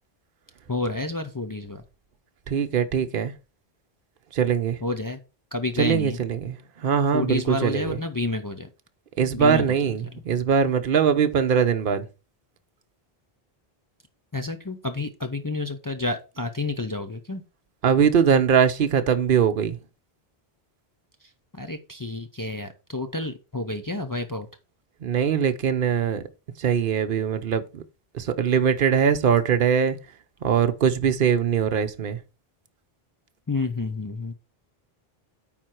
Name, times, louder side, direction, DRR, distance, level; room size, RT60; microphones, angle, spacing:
voice 1, 0.7-1.8 4.8-5.2 5.5-6.2 7.1-8.7 9.3-9.8 14.3-17.4 21.5-24.5 33.5-34.3, left 2 dB, 30° left, 0.4 m, -29 dB
voice 2, 2.5-3.3 4.3-4.8 5.8-8.0 9.2-12.0 17.8-19.8 25.0-26.2 26.6-27.8 28.1-30.0 30.4-32.2, right 7 dB, 60° right, 0.9 m, -22 dB
9.2 x 3.8 x 4.4 m
omnidirectional pair, 1.0 m